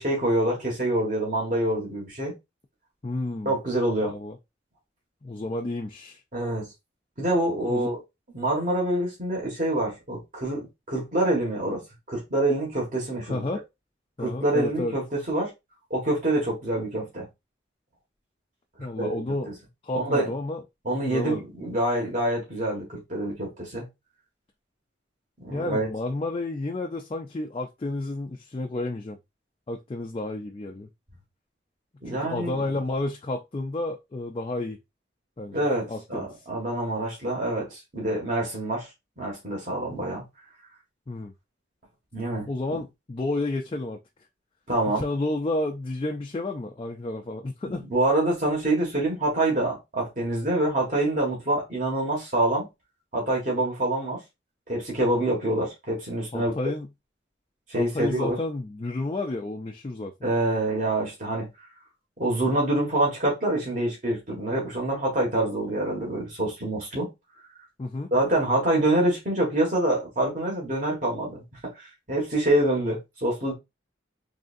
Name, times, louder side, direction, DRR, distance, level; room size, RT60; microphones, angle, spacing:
voice 1, 0.0-2.3 3.5-4.1 6.3-6.7 7.2-8.0 8.3-11.8 12.1-13.5 14.2-15.5 15.9-17.3 19.0-19.2 19.9-20.3 20.9-23.9 25.4-25.9 32.0-32.6 35.5-38.9 39.2-40.2 42.1-42.8 44.7-45.0 47.7-52.7 53.1-54.2 54.7-56.5 57.7-58.4 60.2-61.5 62.2-67.1 68.1-71.4 71.8-73.5, right 1 dB, 45° right, 1.8 m, -26 dB
voice 2, 3.0-3.6 4.0-4.4 5.2-6.2 7.7-7.9 13.3-13.6 14.2-14.9 18.8-19.5 19.8-20.6 21.0-21.4 25.5-29.2 29.7-30.9 32.1-34.8 35.4-36.3 41.1-41.3 42.5-44.0 44.9-47.9 56.3-56.9 57.7-60.1 67.8-68.1, left 2 dB, 30° left, 0.4 m, -31 dB
3.8 x 3.4 x 2.6 m
head